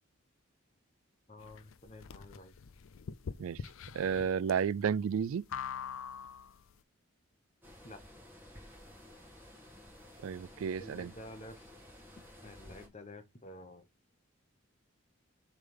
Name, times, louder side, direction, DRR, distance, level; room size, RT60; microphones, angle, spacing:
voice 1, 1.3-2.6 7.8-8.0 10.8-11.7 12.4-13.9, left 1 dB, 35° left, 1.1 m, -50 dB
sound 1, 1.4-6.7, left 7 dB, 80° left, 0.5 m, -44 dB
voice 2, 3.9-5.4 10.2-11.1, right 7 dB, 85° right, 0.3 m, -32 dB
sound 2, 7.6-12.9, left 1 dB, 10° right, 2.4 m, -54 dB
6.5 x 3.7 x 5.3 m
head